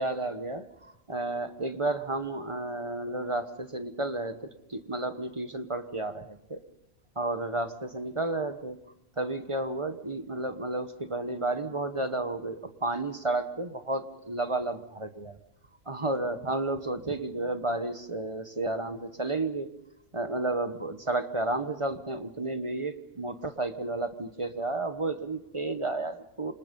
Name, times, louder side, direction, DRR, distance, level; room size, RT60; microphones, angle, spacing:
voice 1, 0.0-6.6 7.2-8.8 9.2-15.4 15.9-19.7 20.1-26.5, right 2 dB, 25° right, 9 dB, 1.0 m, -32 dB
27.5 x 26.0 x 5.3 m, 0.81 s
omnidirectional pair, 1.5 m